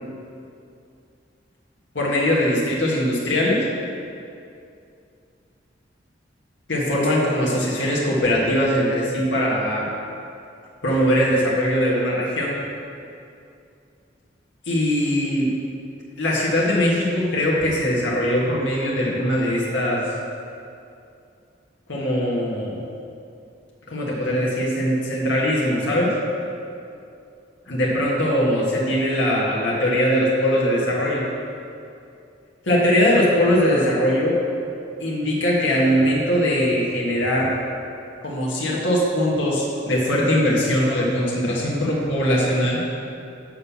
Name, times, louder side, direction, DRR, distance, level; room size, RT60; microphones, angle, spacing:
voice 1, 1.9-3.6 6.7-9.9 10.8-12.6 14.7-15.5 16.2-20.0 21.9-22.8 23.9-26.1 27.7-31.3 32.6-34.4 35.0-37.5 38.2-42.8, equal, 80° left, -4 dB, 1.6 m, -21 dB
6.7 x 5.5 x 7.1 m, 2.5 s
head